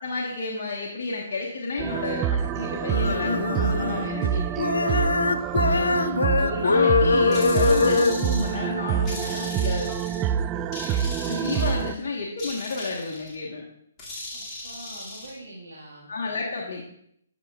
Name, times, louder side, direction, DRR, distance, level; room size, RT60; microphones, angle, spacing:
voice 1, 0.0-5.0 5.6-6.1 6.4-9.9 11.3-13.6 16.1-16.8, left 3 dB, 55° left, -3 dB, 1.1 m, -31 dB
sound 1, 1.8-11.9, right 8 dB, 20° right, 0.3 m, -27 dB
sound 2, 2.9-4.3 4.6-8.2, left 4 dB, 85° left, 0.4 m, -22 dB
voice 2, 5.6-6.3 14.3-16.1, right 1 dB, 80° right, -4 dB, 1.5 m, -44 dB
sound 3, 7.3-8.6 9.1-10.3 10.7-12.0 12.4-13.4 14.0-15.3, left 2 dB, 20° left, 2.2 m, -38 dB
10.0 x 6.9 x 2.3 m, 0.72 s
hypercardioid pair, 140°, 0 cm